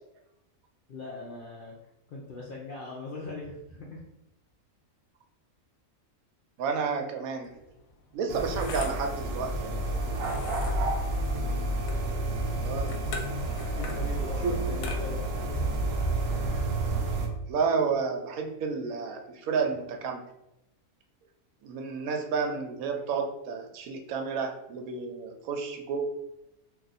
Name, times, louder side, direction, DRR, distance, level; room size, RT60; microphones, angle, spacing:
voice 1, 0.9-1.7 2.1-4.0 9.6-9.7 10.0-10.2 12.5-12.9 13.8-15.2 21.9-22.0, left 3 dB, 65° left, -3 dB, 0.5 m, -41 dB
voice 2, 6.6-7.6 8.1-9.8 12.6-12.9 14.4-14.7 17.5-20.2 21.6-26.0, right 5 dB, 85° right, 4 dB, 1.0 m, -31 dB
sound 1, 7.4-17.3, left 3 dB, 85° left, 1.0 m, -43 dB
sound 2, 8.3-17.3, right 2 dB, 60° right, 0.7 m, -30 dB
2.5 x 2.4 x 4.0 m, 0.87 s
omnidirectional pair, 1.4 m